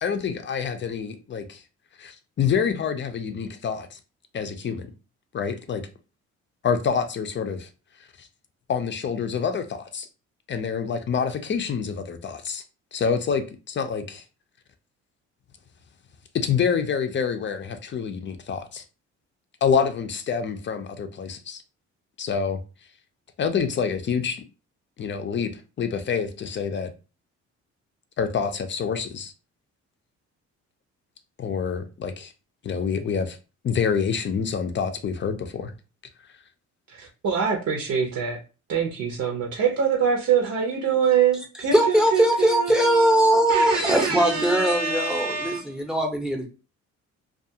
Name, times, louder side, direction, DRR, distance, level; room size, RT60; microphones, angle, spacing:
voice 1, 0.0-1.6 2.0-4.0 4.3-4.9 5.3-5.8 6.6-7.7 8.2-8.3 8.7-10.1 10.5-12.6 12.9-14.2 16.3-18.8 19.6-21.6 22.2-22.6 23.4-24.4 25.0-25.5 25.8-26.9 28.2-29.3 31.4-32.3 32.6-33.4 33.6-35.7, left 6 dB, 40° left, 0.5 m, -27 dB
voice 2, 36.9-38.4 38.7-45.7, right 7 dB, 70° right, 0.7 m, -25 dB
voice 3, 41.7-46.5, right 1 dB, ahead, 0.7 m, -21 dB
2.3 x 2.3 x 2.7 m
cardioid pair, 90°, 30 cm